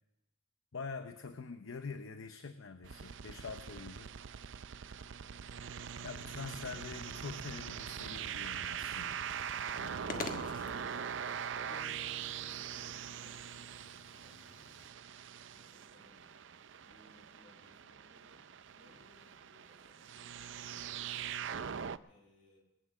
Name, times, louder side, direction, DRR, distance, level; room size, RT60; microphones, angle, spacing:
voice 1, 0.7-4.1 6.0-9.2 9.8-10.5, left 4 dB, 80° left, 8 dB, 0.8 m, -45 dB
sound 1, 2.8-22.0, right 8 dB, 65° right, 0.5 m, -42 dB
sound 2, 7.9-14.9, left 3 dB, 40° left, 1.3 m, -50 dB
voice 2, 11.5-14.8 15.5-16.4 16.8-18.4 18.7-20.5 20.9-21.4 22.0-22.6, left 2 dB, 65° left, -1 dB, 7.0 m, -65 dB
Acoustic guitar, 11.7-14.5, equal, 20° left, 1.9 m, -59 dB
19.5 x 9.0 x 7.1 m, 0.93 s
head